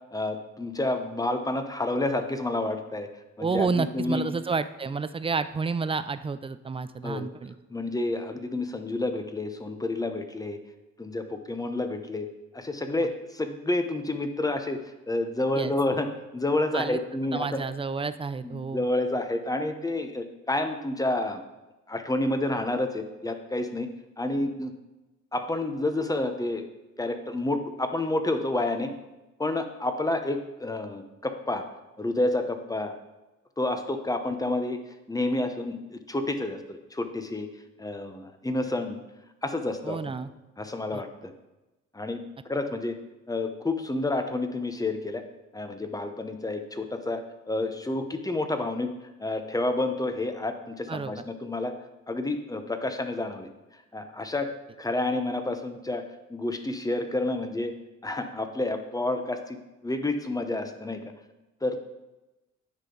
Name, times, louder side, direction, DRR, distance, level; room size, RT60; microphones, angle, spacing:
voice 1, 0.1-3.1 3.4-4.3 7.0-7.3 7.7-10.6 11.0-12.3 12.5-14.8 15.1-17.6 18.4-21.4 21.9-23.9 24.2-24.7 25.3-26.6 27.0-28.9 29.4-31.6 32.0-33.0 33.6-34.8 35.1-37.5 37.8-39.0 39.4-40.1 40.6-41.3 41.9-42.2 42.4-43.0 43.3-45.2 45.5-47.2 47.5-48.9 49.2-51.7 52.1-53.5 53.9-54.5 54.8-56.0 56.3-57.7 58.0-59.6 59.8-61.0 61.6-61.8, left 2 dB, 10° left, 7 dB, 0.8 m, -29 dB
voice 2, 3.4-7.5 15.6-15.7 16.7-17.0 17.3-18.9 39.8-40.3 40.9-41.0 50.9-51.2, right 4 dB, 20° right, 13 dB, 0.4 m, -30 dB
9.7 x 5.7 x 3.9 m, 1.0 s
cardioid pair, 90°, 30 cm